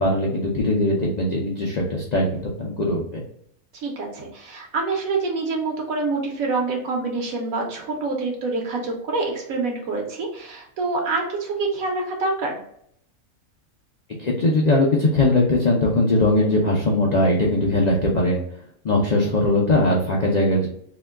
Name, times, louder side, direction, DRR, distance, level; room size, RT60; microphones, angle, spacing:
voice 1, 0.0-3.2 14.2-18.4 18.8-20.7, left 1 dB, 90° left, -2 dB, 0.3 m, -20 dB
voice 2, 3.7-12.6, right 3 dB, 80° right, 0 dB, 1.2 m, -26 dB
2.9 x 2.2 x 3.4 m, 0.68 s
omnidirectional pair, 1.4 m